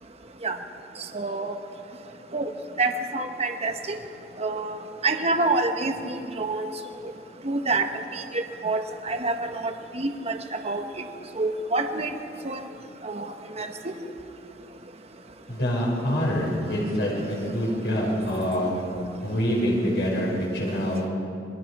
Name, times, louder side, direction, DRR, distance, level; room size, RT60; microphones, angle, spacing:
voice 1, 1.1-1.5 2.3-2.5 2.8-4.0 4.4-4.7 5.0-6.7 7.4-7.9 8.3-10.4 10.6-10.8 11.4-12.1 12.4-12.6 13.0-13.9, right 3 dB, 35° right, 6 dB, 1.3 m, -27 dB
voice 2, 15.5-18.7 19.2-21.0, equal, 75° left, -3 dB, 5.3 m, -25 dB
27.0 x 22.0 x 4.9 m, 2.6 s
head